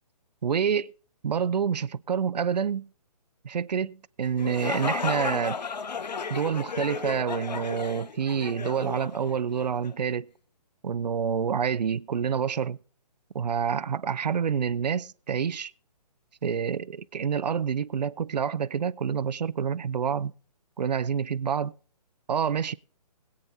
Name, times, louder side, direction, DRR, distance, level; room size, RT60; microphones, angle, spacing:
voice 1, 0.4-0.9 1.2-2.9 3.4-5.6 6.3-10.3 10.8-12.8 13.3-15.7 16.4-20.3 20.8-21.7 22.3-22.7, right 7 dB, 80° right, 0.6 m, -27 dB
sound 1, 4.2-9.9, left 5 dB, 85° left, 0.8 m, -34 dB
21.5 x 8.8 x 2.7 m
hypercardioid pair, 150°, 21 cm